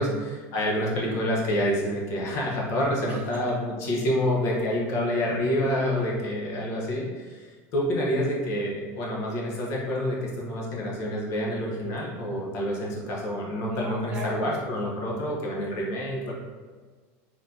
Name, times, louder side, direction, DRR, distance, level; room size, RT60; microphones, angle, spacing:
voice 1, 0.0-16.3, equal, 45° left, -3 dB, 1.1 m, -28 dB
voice 2, 3.1-3.4 5.6-6.1 13.6-14.6, right 3 dB, 25° right, -1 dB, 0.5 m, -38 dB
4.6 x 3.8 x 2.8 m, 1.5 s
cardioid pair, 170°, 7 cm